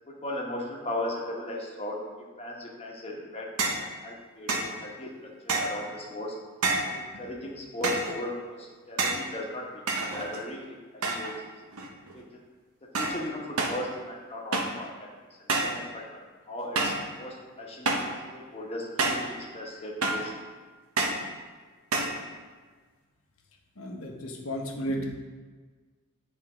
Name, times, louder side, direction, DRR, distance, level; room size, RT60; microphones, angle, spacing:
voice 1, 0.1-2.0 2.4-3.5 4.0-6.4 6.9-10.6 10.9-11.3 12.1-12.2 12.9-15.1 15.6-16.2 16.5-17.9 18.3-20.3, left 1 dB, 30° left, -2 dB, 1.2 m, -37 dB
sound 1, 3.6-3.9 4.5-4.8 5.5-5.8 6.6-7.0 7.8-8.2 9.0-9.3 9.9-10.5 11.0-11.4 11.7-12.2 12.9-13.2 13.6-13.8 14.5-14.8 15.5-15.8 16.7-17.1 17.8-18.2 19.0-19.3 20.0-20.3 21.0-21.3 21.9-22.2, right 3 dB, 75° right, 0.9 m, -28 dB
voice 2, 23.8-25.1, equal, 70° left, 1 dB, 1.1 m, -33 dB
9.3 x 3.7 x 5.0 m, 1.4 s
head